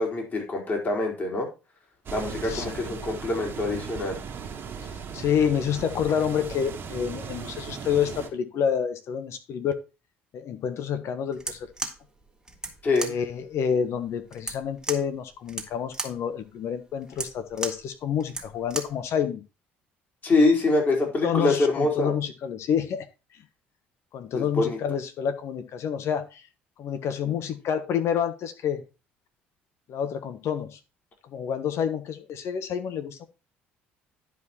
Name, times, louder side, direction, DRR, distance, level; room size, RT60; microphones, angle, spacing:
voice 1, 0.0-1.5 2.1-4.2 12.8-13.1 20.2-22.1 24.3-24.8, left 2 dB, 35° left, 1 dB, 4.1 m, -24 dB
sound 1, 2.1-8.3, right 6 dB, 45° right, 1.9 m, -37 dB
voice 2, 2.2-3.0 5.1-9.8 10.3-11.7 13.0-19.4 21.0-23.1 24.1-26.4 26.8-28.8 29.9-30.8 31.2-33.3, left 8 dB, 55° left, 10 dB, 1.2 m, -28 dB
sound 2, 11.3-19.0, right 2 dB, 10° right, 1.8 m, -37 dB
11.0 x 4.9 x 4.2 m, 0.29 s
hypercardioid pair, 60°, 6 cm